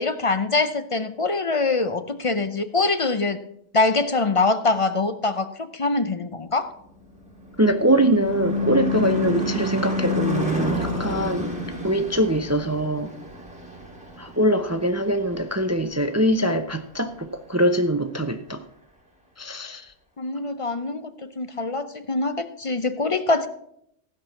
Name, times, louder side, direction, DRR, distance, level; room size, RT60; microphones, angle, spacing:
voice 1, 0.0-3.4 3.7-6.7 20.2-23.5, left 3 dB, 35° left, 11 dB, 0.5 m, -24 dB
Car passing by / Truck / Engine, 7.0-15.7, left 2 dB, 5° right, 1.7 m, -29 dB
voice 2, 7.6-11.5 11.8-13.1 14.2-18.6 19.4-19.9, right 1 dB, 20° right, 8 dB, 0.4 m, -23 dB
16.0 x 6.0 x 5.9 m, 0.72 s
omnidirectional pair, 1.2 m